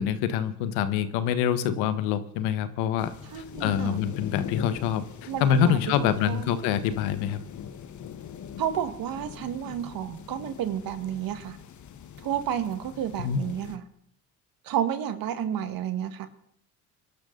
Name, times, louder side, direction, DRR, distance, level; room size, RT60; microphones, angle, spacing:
voice 1, 0.0-7.4 13.2-13.4, left 9 dB, 80° left, 12 dB, 1.4 m, -26 dB
sound 1, 3.0-13.8, left 8 dB, 50° left, 1.4 m, -41 dB
voice 2, 3.3-4.0 5.3-6.6 8.6-11.6 12.2-13.8 14.6-16.3, right 10 dB, 60° right, 9 dB, 1.8 m, -31 dB
22.5 x 12.0 x 3.9 m, 0.70 s
supercardioid pair, 85°, 39 cm